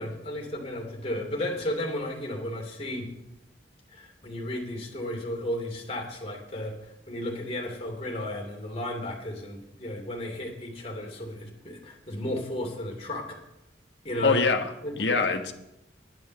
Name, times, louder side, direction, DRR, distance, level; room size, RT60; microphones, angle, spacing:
voice 1, 0.0-3.1 3.9-13.4 14.0-14.4 14.8-15.2, left 1 dB, 35° left, 0 dB, 2.8 m, -34 dB
voice 2, 14.2-15.5, left 4 dB, 70° left, 4 dB, 1.3 m, -24 dB
10.5 x 9.5 x 6.5 m, 0.85 s
head